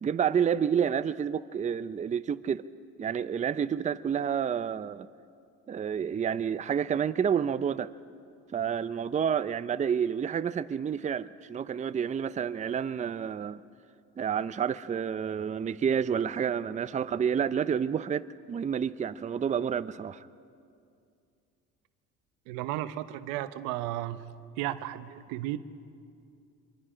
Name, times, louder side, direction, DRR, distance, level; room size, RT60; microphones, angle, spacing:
voice 1, 0.0-2.6 3.0-5.1 5.7-7.9 8.5-13.6 14.2-20.3, right 8 dB, 25° right, 13 dB, 0.5 m, -29 dB
voice 2, 22.5-24.2 24.6-25.6, right 14 dB, 85° right, 12 dB, 0.9 m, -34 dB
26.0 x 23.0 x 5.0 m, 2.5 s
supercardioid pair, 95°, 31 cm